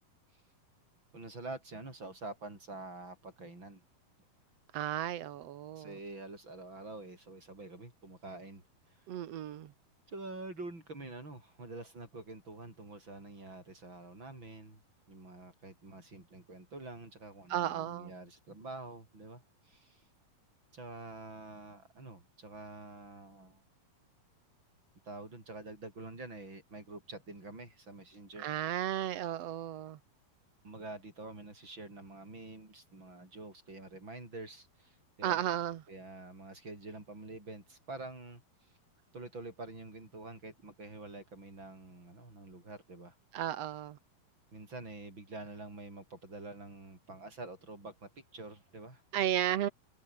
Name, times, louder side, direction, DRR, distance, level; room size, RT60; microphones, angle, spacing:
voice 1, 1.1-3.8 5.8-9.2 10.1-14.8 15.1-20.0 20.7-23.6 25.1-28.5 30.6-35.4 35.9-38.4 39.1-43.2 44.5-49.0, right 2 dB, 30° right, 8.6 m, -47 dB
voice 2, 4.7-5.9 9.1-9.7 17.5-18.1 28.4-30.0 35.2-35.8 43.3-44.0 49.1-49.7, right 12 dB, 60° right, 1.7 m, -34 dB
omnidirectional pair, 4.2 m